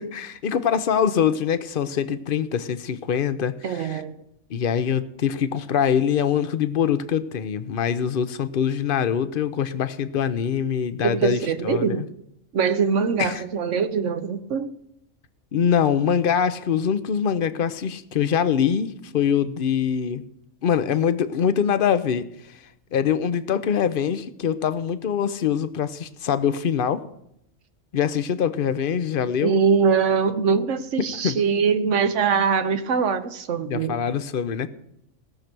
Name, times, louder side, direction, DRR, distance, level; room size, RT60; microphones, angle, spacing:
voice 1, 0.0-4.0 4.5-11.8 13.2-13.4 15.5-20.2 20.6-22.3 22.9-27.0 27.9-29.6 31.2-31.4 33.7-34.7, left 8 dB, 55° left, 12 dB, 0.8 m, -23 dB
voice 2, 3.6-4.2 11.0-12.1 12.5-14.7 29.4-34.0, right 6 dB, 75° right, 10 dB, 1.2 m, -22 dB
17.5 x 6.6 x 6.0 m, 0.78 s
omnidirectional pair, 1.2 m